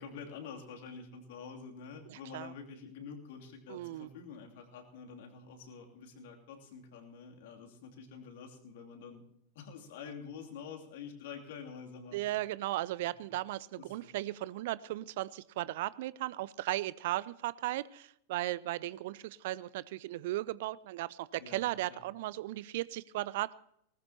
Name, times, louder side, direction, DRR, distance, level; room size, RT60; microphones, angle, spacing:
voice 1, 0.0-9.2 9.5-12.2 13.8-14.1 21.4-22.1, left 6 dB, 55° left, 2 dB, 2.8 m, -47 dB
voice 2, 2.1-2.5 3.7-4.1 12.1-23.5, right 16 dB, 50° right, 21 dB, 0.5 m, -36 dB
19.5 x 19.0 x 2.9 m, 0.71 s
figure-of-eight pair, 90°, 0 cm